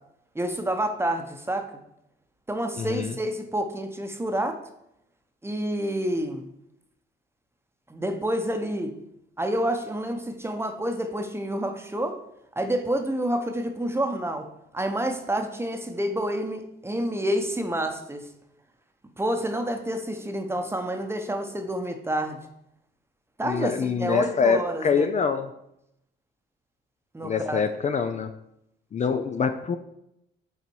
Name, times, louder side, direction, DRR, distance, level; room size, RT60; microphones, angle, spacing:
voice 1, 0.3-1.8 2.5-4.6 5.4-6.5 7.9-8.9 9.4-12.2 12.6-14.5 14.7-18.2 19.2-22.4 23.4-25.1 27.1-27.6, right 1 dB, 10° right, 6 dB, 0.9 m, -28 dB
voice 2, 2.8-3.2 23.4-25.5 27.2-28.3 28.9-29.8, left 5 dB, 35° left, 8 dB, 0.5 m, -25 dB
6.8 x 4.1 x 4.6 m, 0.80 s
cardioid pair, 90°, 20 cm